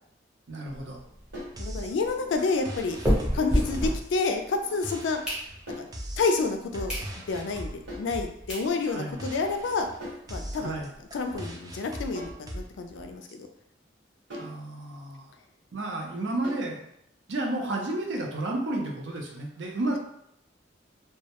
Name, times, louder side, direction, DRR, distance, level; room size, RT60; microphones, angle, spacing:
voice 1, 0.5-1.0 8.9-9.2 10.6-10.9 14.4-15.3 15.7-16.9 17.3-20.0, right 2 dB, 75° right, 1 dB, 0.5 m, -31 dB
sound 1, 0.7-4.6 5.0-5.9 6.4-6.5 6.9-7.1 7.5-7.6 8.2-8.3 8.5-8.7 9.1-9.2 9.4-9.5 9.8-9.9 10.2-11.4, equal, 5° right, 0.7 m, -31 dB
sound 2, 1.3-1.6 3.5-3.8 5.7-6.0 7.9-8.2 10.0-10.3 12.1-12.5 14.3-14.6 16.4-16.7, equal, 90° right, 1.2 m, -40 dB
voice 2, 1.6-3.0 3.3-5.2 5.8-5.9 6.2-6.9 7.3-9.9 10.3-10.8 11.1-13.5, left 4 dB, 75° left, 5 dB, 0.3 m, -29 dB
sound 3, 1.6-13.3, equal, 20° right, 0.3 m, -40 dB
2.2 x 2.0 x 2.8 m, 0.74 s
head